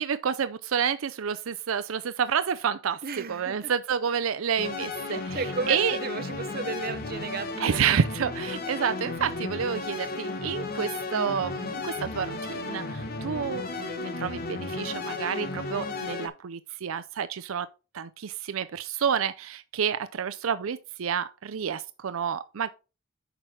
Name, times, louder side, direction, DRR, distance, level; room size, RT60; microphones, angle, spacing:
voice 1, 0.0-5.4 5.7-6.0 7.6-17.7 17.9-22.7, right 7 dB, 85° right, 0.5 m, -29 dB
voice 2, 3.0-3.7 5.1-8.0, right 4 dB, 50° right, 0.9 m, -34 dB
sound 1, 4.6-16.3, left 3 dB, 50° left, 1.1 m, -34 dB
8.9 x 6.0 x 3.3 m
head